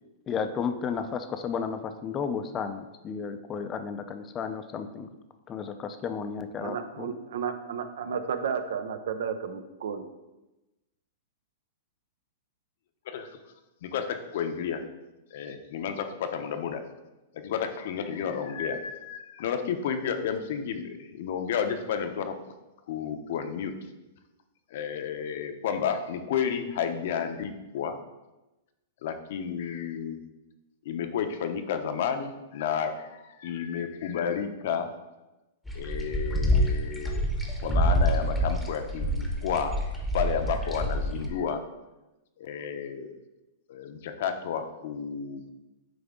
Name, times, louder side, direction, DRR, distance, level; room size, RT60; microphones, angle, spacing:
voice 1, 0.3-5.1 5.5-7.1, left 6 dB, 20° left, 8 dB, 0.4 m, -33 dB
voice 2, 6.6-10.1, right 7 dB, 75° right, 9 dB, 0.6 m, -32 dB
voice 3, 13.8-14.8 15.3-16.8 17.3-22.3 22.9-23.7 24.7-28.0 29.0-30.2 30.8-34.9 35.7-37.2 37.6-39.8 40.1-41.6 42.4-43.2 43.7-45.5, left 7 dB, 55° left, 7 dB, 0.7 m, -31 dB
sound 1, 35.7-41.3, equal, 5° left, 0.8 m, -27 dB
9.1 x 3.5 x 3.6 m, 1.0 s
supercardioid pair, 160°, 0 cm